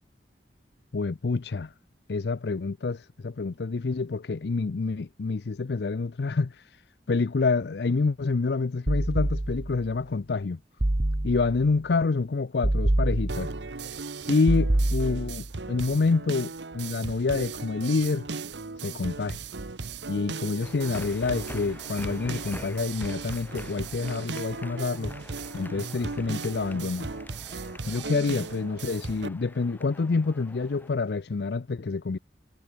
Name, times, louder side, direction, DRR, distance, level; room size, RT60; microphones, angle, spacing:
voice 1, 0.9-1.7 2.1-6.8 7.1-10.6 11.2-13.5 14.3-18.3 18.8-19.4 20.1-25.2 25.5-27.1 27.9-32.2, left 4 dB, 70° left, 0.5 m, -27 dB
sound 1, 8.9-9.9 10.8-11.7 12.6-13.7 14.5-15.5, right 1 dB, 35° right, 0.9 m, -26 dB
sound 2, 13.3-29.3, right 4 dB, 90° right, 1.1 m, -37 dB
sound 3, 20.6-30.9, left 1 dB, 10° left, 3.2 m, -46 dB
head